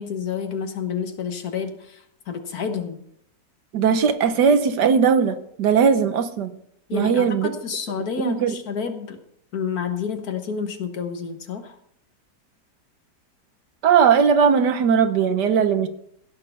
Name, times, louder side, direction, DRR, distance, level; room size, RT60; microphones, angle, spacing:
voice 1, 0.0-3.0 6.9-9.2 9.5-11.8, left 6 dB, 65° left, 7 dB, 1.7 m, -29 dB
voice 2, 3.7-6.5 6.9-7.5 8.2-8.5 13.8-15.9, right 6 dB, 80° right, 9 dB, 1.6 m, -18 dB
16.5 x 6.5 x 5.6 m, 0.71 s
omnidirectional pair, 1.8 m